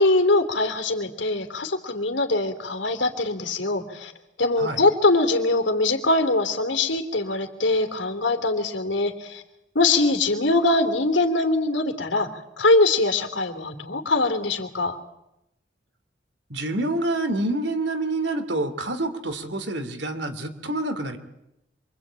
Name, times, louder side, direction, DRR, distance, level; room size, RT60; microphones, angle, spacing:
voice 1, 0.0-4.1 4.4-9.4 9.7-12.3 12.6-15.0, left 2 dB, 80° left, 7 dB, 3.2 m, -22 dB
voice 2, 16.5-21.2, right 2 dB, 70° right, 8 dB, 2.9 m, -27 dB
27.0 x 24.5 x 9.0 m, 0.87 s
head